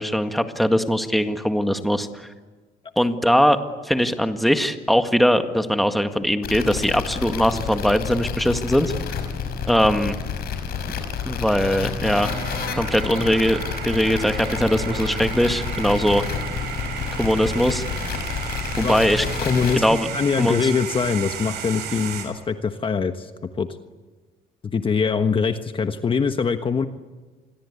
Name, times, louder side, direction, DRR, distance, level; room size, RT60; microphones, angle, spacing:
voice 1, 0.0-2.3 3.0-3.6 3.8-8.9 9.7-10.2 11.3-12.4 12.7-16.2 17.2-17.8 18.8-19.3 19.7-20.1 20.4-20.6, equal, ahead, 7 dB, 1.9 m, -21 dB
sound 1, 6.4-19.8, left 6 dB, 65° left, 5.8 m, -29 dB
sound 2, 12.0-22.2, right 8 dB, 80° right, 7.7 m, -33 dB
voice 2, 19.4-23.3 23.6-23.7 24.6-26.9, left 5 dB, 30° left, 8 dB, 1.3 m, -23 dB
28.5 x 22.5 x 8.4 m, 1.3 s
cardioid pair, 110°, 17 cm